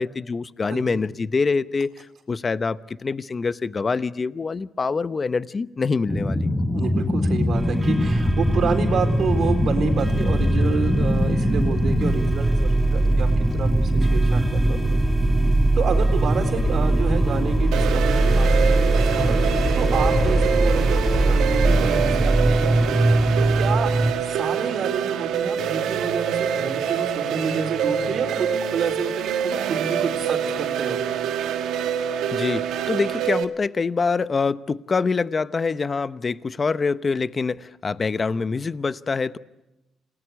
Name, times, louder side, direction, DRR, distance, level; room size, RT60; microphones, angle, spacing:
voice 1, 0.0-6.5 32.3-39.4, left 4 dB, 35° left, 14 dB, 0.8 m, -25 dB
sound 1, 6.1-12.1, left 1 dB, 15° left, 1.5 m, -23 dB
voice 2, 6.7-14.8 15.7-23.9 24.2-31.0 38.3-38.4, right 5 dB, 60° right, 4 dB, 4.1 m, -29 dB
sound 2, 7.5-24.1, right 1 dB, 10° right, 4.9 m, -21 dB
sound 3, 17.7-33.5, right 8 dB, 85° right, 1.6 m, -26 dB
28.5 x 19.0 x 8.3 m, 0.97 s
cardioid pair, 90°, 0 cm